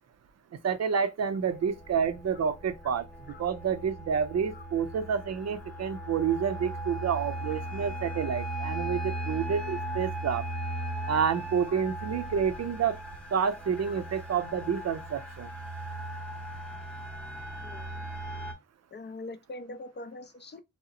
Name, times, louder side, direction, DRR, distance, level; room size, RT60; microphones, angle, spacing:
voice 1, 0.6-10.5 11.1-13.0 13.3-15.5, right 7 dB, 60° right, 0.5 m, -29 dB
sound 1, 1.4-18.5, right 1 dB, 5° left, 0.8 m, -38 dB
voice 2, 18.9-20.6, left 2 dB, 35° left, 0.4 m, -42 dB
2.8 x 2.0 x 2.4 m
cardioid pair, 50°, 30 cm